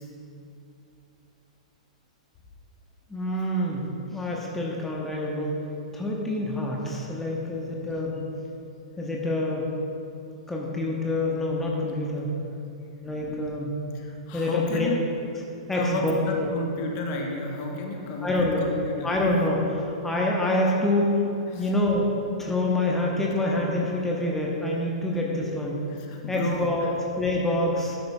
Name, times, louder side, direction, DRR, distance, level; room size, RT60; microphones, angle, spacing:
voice 1, 3.1-3.8 4.1-5.6 5.9-8.2 9.0-9.7 10.5-12.3 13.0-13.7 14.3-14.9 15.7-16.2 18.2-18.7 19.0-22.1 22.4-25.8 26.3-26.9 27.2-28.0, left 1 dB, 10° left, -2 dB, 1.1 m, -26 dB
voice 2, 13.1-13.4 13.9-15.0 15.7-19.1 21.5-21.7 25.9-26.9, left 1 dB, 40° left, 1 dB, 1.2 m, -32 dB
12.0 x 9.4 x 2.4 m, 2.7 s
figure-of-eight pair, 105°, 4 cm